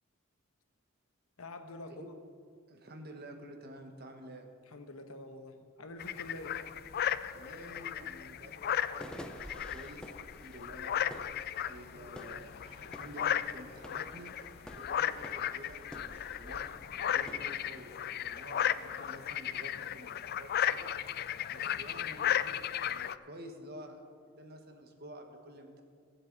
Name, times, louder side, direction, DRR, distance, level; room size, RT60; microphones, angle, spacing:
voice 1, 1.4-2.0 4.7-6.6 11.7-12.3, left 1 dB, 80° left, 6 dB, 1.2 m, -47 dB
voice 2, 2.7-4.5 7.3-10.1 10.4-11.1 11.7-12.5 12.8-14.3 14.7-16.6 17.1-20.9 21.5-25.8, right 1 dB, 45° right, 4 dB, 1.4 m, -50 dB
sound 1, 5.6-5.7 6.0-17.5, equal, 5° left, 0.6 m, -51 dB
sound 2, 6.0-23.2, left 10 dB, 45° left, 0.3 m, -35 dB
sound 3, 12.4-19.2, right 2 dB, 75° right, 2.5 m, -60 dB
22.5 x 7.9 x 4.0 m, 2.2 s
head